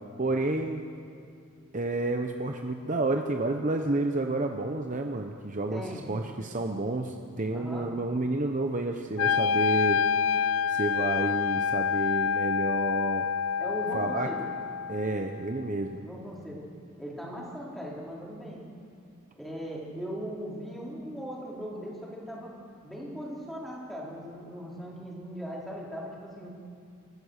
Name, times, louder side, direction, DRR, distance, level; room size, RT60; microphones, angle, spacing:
voice 1, 0.2-0.8 1.7-5.8 6.1-10.0 10.7-13.3 13.9-14.3 14.9-16.0, right 2 dB, 35° right, 4 dB, 0.9 m, -30 dB
voice 2, 5.7-6.1 7.5-7.9 13.6-14.4 16.0-16.6 17.0-18.6 19.4-22.5 22.8-26.5, equal, ahead, -5 dB, 4.2 m, -39 dB
Wind instrument woodwind instrument, 9.2-15.3, left 6 dB, 70° left, 0.4 m, -27 dB
29.5 x 14.0 x 6.6 m, 2.4 s
head